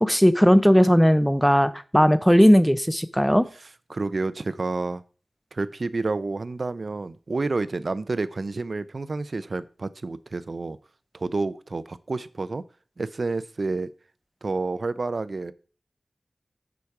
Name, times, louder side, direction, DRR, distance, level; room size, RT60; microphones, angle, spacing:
voice 1, 0.0-3.5, equal, ahead, 0.6 m, -17 dB
voice 2, 3.9-5.0 5.5-10.8 11.1-12.6 13.0-13.9 14.4-15.5, right 3 dB, 60° right, 0.5 m, -29 dB
7.1 x 5.1 x 4.7 m
wide cardioid pair, 65°, 0 cm